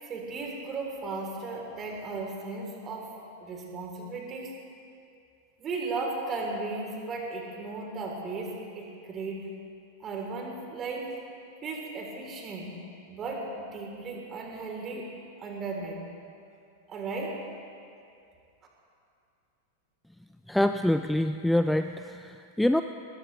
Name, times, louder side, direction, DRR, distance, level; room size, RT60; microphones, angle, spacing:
voice 1, 0.0-3.1 3.4-4.5 5.6-9.4 10.0-11.1 11.6-12.8 13.1-15.1 15.4-16.0 16.9-17.4, right 3 dB, 25° right, 0 dB, 3.5 m, -36 dB
voice 2, 20.5-22.8, left 1 dB, 5° left, 9 dB, 0.4 m, -25 dB
22.0 x 19.5 x 3.3 m, 2.4 s
figure-of-eight pair, 90°, 0 cm